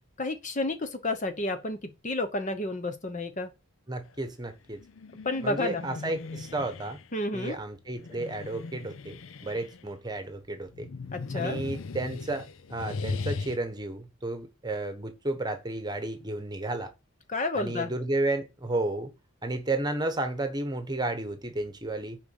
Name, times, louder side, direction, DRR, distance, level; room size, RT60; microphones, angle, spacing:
voice 1, 0.2-1.8 2.0-3.5 5.2-5.9 7.1-7.6 11.1-11.6 17.3-17.9, left 2 dB, 35° left, 0.9 m, -30 dB
voice 2, 3.9-4.8 5.4-7.0 7.3-10.9 11.3-16.9 17.5-19.1 19.4-22.2, right 2 dB, 20° right, 1.1 m, -32 dB
sound 1, 4.7-7.1 7.9-9.9 10.7-13.6, left 4 dB, 65° left, 0.5 m, -38 dB
6.9 x 5.2 x 7.1 m
head